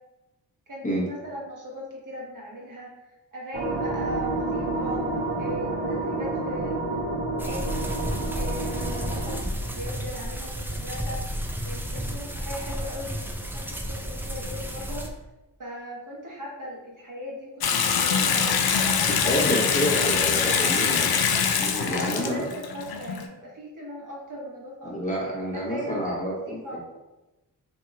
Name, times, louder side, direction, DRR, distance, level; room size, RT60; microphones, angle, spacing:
voice 1, 0.7-2.9 3.3-5.0 5.4-7.9 8.3-11.2 11.6-15.1 15.6-19.4 20.4-20.7 21.8-26.8, equal, 45° right, -4 dB, 1.2 m, -38 dB
sound 1, 3.5-9.4, right 2 dB, 90° right, 0.8 m, -29 dB
sound 2, 7.4-15.1, equal, 5° right, 0.4 m, -32 dB
Water tap faucet / Sink (filling or washing) / Bathtub (filling or washing), 17.6-23.3, left 6 dB, 60° left, 0.5 m, -24 dB
voice 2, 19.2-21.1 21.6-22.4 24.8-26.6, equal, 15° left, -5 dB, 1.2 m, -28 dB
3.0 x 2.7 x 2.5 m, 1.0 s
supercardioid pair, 40°, 44 cm